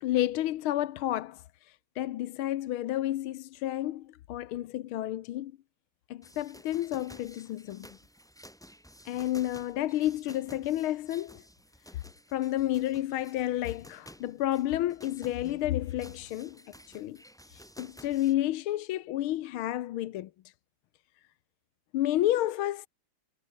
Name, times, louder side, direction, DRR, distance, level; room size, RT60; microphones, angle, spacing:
voice 1, 0.0-5.5 6.1-7.9 9.0-11.4 12.3-16.6 16.9-17.2 17.5-20.3 21.9-22.9, left 14 dB, 75° left, 1.6 m, -31 dB
Boxing gym workout training bags very busy, 6.2-18.3, equal, ahead, 3.6 m, -53 dB
omnidirectional pair, 2.4 m